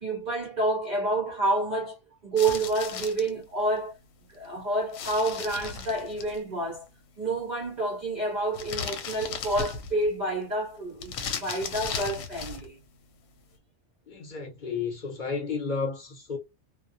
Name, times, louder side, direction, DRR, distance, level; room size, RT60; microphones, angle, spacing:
voice 1, 0.0-4.0 4.4-6.9 7.2-12.8, right 2 dB, 50° right, 0.6 m, -29 dB
sound 1, 2.4-3.3 4.9-6.4 8.5-10.1 11.0-12.7, left 6 dB, 85° left, 1.0 m, -36 dB
voice 2, 14.1-16.4, left 5 dB, 45° left, 0.7 m, -32 dB
2.3 x 2.1 x 2.5 m
omnidirectional pair, 1.4 m